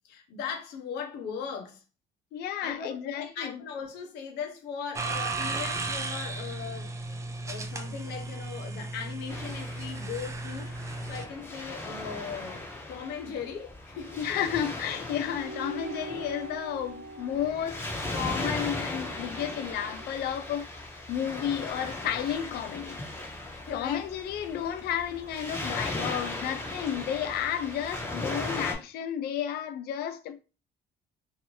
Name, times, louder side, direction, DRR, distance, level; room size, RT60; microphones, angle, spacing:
voice 1, 0.0-1.8 2.6-6.9 7.4-14.4 23.6-24.1, left 6 dB, 85° left, 0.9 m, -39 dB
voice 2, 2.3-3.6 14.2-20.7 21.1-23.0 23.7-30.4, left 9 dB, 70° left, 0.4 m, -32 dB
sound 1, 4.9-11.2, right 3 dB, 15° right, 0.4 m, -35 dB
Waves surf, 9.3-28.7, left 2 dB, 15° left, 1.1 m, -38 dB
sound 2, 15.3-20.1, right 1 dB, 60° right, 0.9 m, -44 dB
2.8 x 2.6 x 3.1 m
cardioid pair, 110°, 17 cm